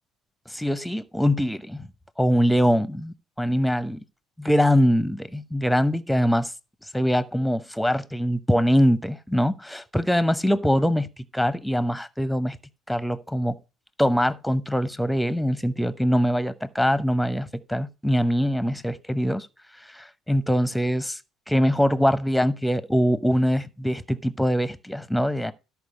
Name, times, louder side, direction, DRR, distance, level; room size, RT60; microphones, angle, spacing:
voice 1, 0.5-1.9 2.2-4.0 4.4-6.5 6.9-12.6 12.9-13.6 14.0-19.5 19.9-21.2 21.5-25.5, equal, ahead, 0.8 m, -23 dB
13.0 x 4.7 x 5.4 m
figure-of-eight pair, 55°, 0 cm